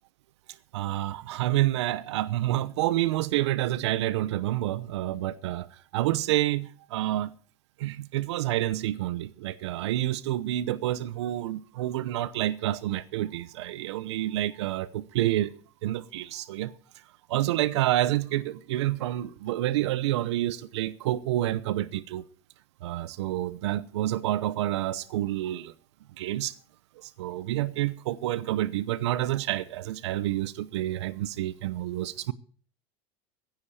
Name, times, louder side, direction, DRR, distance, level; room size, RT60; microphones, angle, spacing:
voice 1, 0.7-5.7 5.9-7.3 7.8-15.5 15.8-16.7 17.3-22.2 22.8-25.7 26.2-26.5 27.2-32.3, right 14 dB, 85° right, 0.8 m, -28 dB
16.0 x 9.8 x 4.9 m
supercardioid pair, 120°, 14 cm